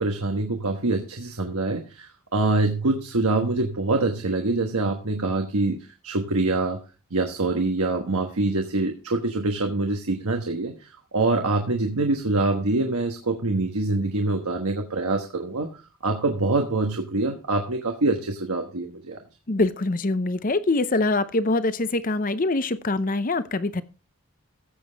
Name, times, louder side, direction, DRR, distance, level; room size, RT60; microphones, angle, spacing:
voice 1, 0.0-5.8 6.0-6.8 7.1-10.7 11.1-15.7 16.0-19.2, right 2 dB, 85° right, 1.3 m, -25 dB
voice 2, 19.5-23.8, left 2 dB, 40° left, 0.7 m, -24 dB
15.0 x 7.6 x 3.4 m
head